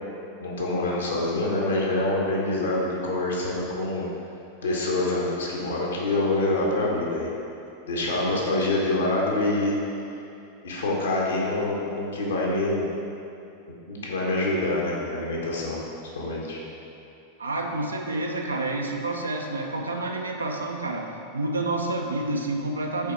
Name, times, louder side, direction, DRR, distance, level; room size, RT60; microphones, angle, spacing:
voice 1, 0.4-4.1 4.6-7.3 7.8-9.7 10.6-12.9 13.9-16.6, left 2 dB, 70° left, -4 dB, 1.2 m, -26 dB
voice 2, 17.4-23.1, right 2 dB, 75° right, 2 dB, 0.6 m, -29 dB
5.4 x 4.2 x 4.4 m, 2.7 s
figure-of-eight pair, 90°, 0 cm